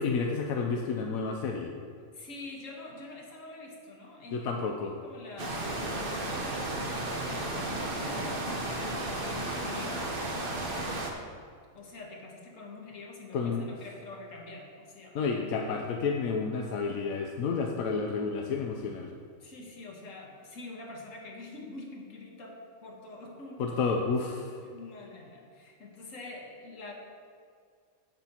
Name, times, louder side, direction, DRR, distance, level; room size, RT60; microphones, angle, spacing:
voice 1, 0.0-1.7 4.3-4.9 13.3-13.7 15.1-19.1 23.6-24.5, left 4 dB, 85° left, 2 dB, 1.1 m, -30 dB
voice 2, 2.1-4.7 5.0-11.0 11.7-15.6 19.4-23.8 24.6-26.9, left 2 dB, 70° left, -1 dB, 1.7 m, -46 dB
sound 1, 5.4-11.1, right 1 dB, 45° right, 1.2 m, -33 dB
15.5 x 6.0 x 2.9 m, 2.2 s
omnidirectional pair, 1.4 m